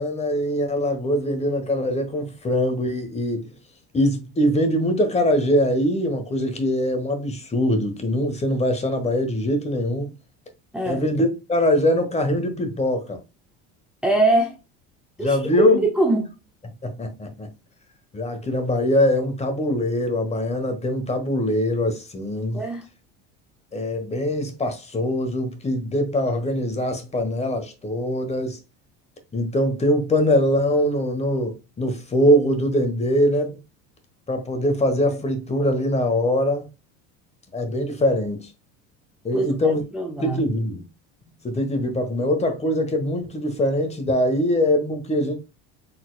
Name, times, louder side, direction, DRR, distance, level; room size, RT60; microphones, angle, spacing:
voice 1, 0.0-3.5 3.9-10.1 10.8-13.2 15.2-15.9 16.8-17.5 18.1-22.6 23.7-28.6 29.3-33.6 34.3-36.7 37.5-38.5 39.2-39.8 40.2-40.8 41.4-45.4, equal, 20° left, 1.2 m, -22 dB
voice 2, 14.0-14.5 15.2-16.4 22.5-22.8 39.3-40.5, right 2 dB, 5° right, 0.9 m, -23 dB
4.2 x 4.0 x 2.3 m
supercardioid pair, 105°, 33 cm